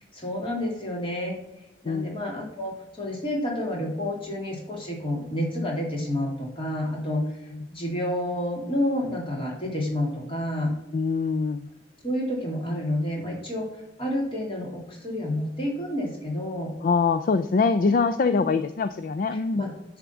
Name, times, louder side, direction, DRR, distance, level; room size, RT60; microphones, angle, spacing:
voice 1, 0.1-1.4 1.8-7.4 7.7-10.7 12.0-16.7 17.8-18.4 19.5-19.7, left 1 dB, 30° left, -2 dB, 2.6 m, -29 dB
voice 2, 10.9-11.7 16.8-19.6, left 4 dB, 50° left, 12 dB, 0.4 m, -23 dB
10.0 x 3.6 x 7.1 m, 0.93 s
head